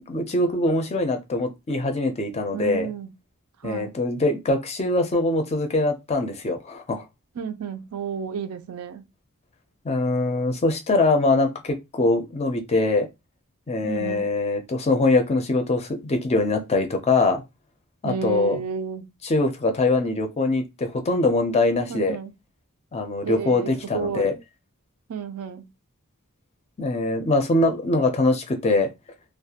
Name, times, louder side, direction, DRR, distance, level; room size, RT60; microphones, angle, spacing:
voice 1, 0.1-2.9 3.6-7.0 9.8-13.1 13.7-17.4 18.0-18.6 19.2-22.2 22.9-24.3 26.8-28.9, left 2 dB, 30° left, 0.4 m, -23 dB
voice 2, 2.5-3.1 3.6-4.0 7.4-9.1 13.8-14.3 18.0-19.1 21.9-22.3 23.2-24.4 25.1-25.7, right 6 dB, 70° right, 0.4 m, -31 dB
2.3 x 2.1 x 2.8 m
head